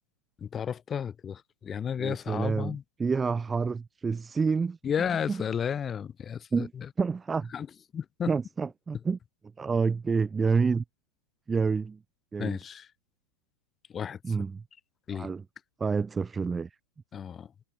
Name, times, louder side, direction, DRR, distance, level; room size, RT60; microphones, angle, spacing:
voice 1, 0.4-2.8 4.8-6.7 7.5-7.7 7.9-8.3 12.4-12.8 13.9-14.2 15.1-15.3 17.1-17.5, left 8 dB, 20° left, 2.0 m, -32 dB
voice 2, 2.0-4.8 5.3-5.4 6.5-6.7 7.0-7.5 8.3-9.2 9.6-10.8 11.5-12.0 12.3-12.6 14.2-14.6 15.1-15.4 15.8-16.7, right 5 dB, 15° right, 7.8 m, -28 dB
figure-of-eight pair, 90°, 0 cm